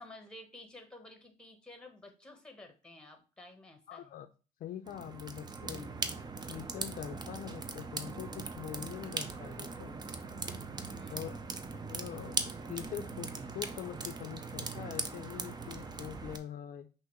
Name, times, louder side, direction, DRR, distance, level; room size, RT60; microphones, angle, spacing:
voice 1, 0.0-4.1 10.9-11.5, left 2 dB, 5° left, 5 dB, 1.0 m, -52 dB
voice 2, 3.9-4.3 4.6-5.9 6.5-9.9 11.1-11.4 11.9-16.9, left 10 dB, 55° left, 8 dB, 0.5 m, -43 dB
sound 1, 4.9-16.4, right 4 dB, 25° right, 0.5 m, -40 dB
5.7 x 2.6 x 3.0 m, 0.32 s
cardioid pair, 110°, 17 cm